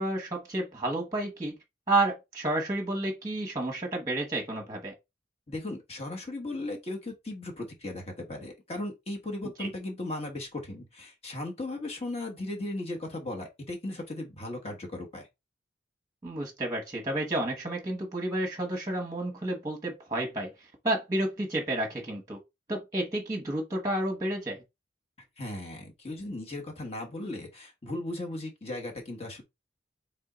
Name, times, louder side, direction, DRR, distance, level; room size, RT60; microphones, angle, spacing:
voice 1, 0.0-1.5 1.9-4.9 9.6-9.7 16.2-22.4 22.7-24.6, right 1 dB, 20° right, 1.0 m, -31 dB
voice 2, 5.5-15.3 25.4-29.4, left 2 dB, 35° left, 1.3 m, -37 dB
3.6 x 3.4 x 3.9 m
head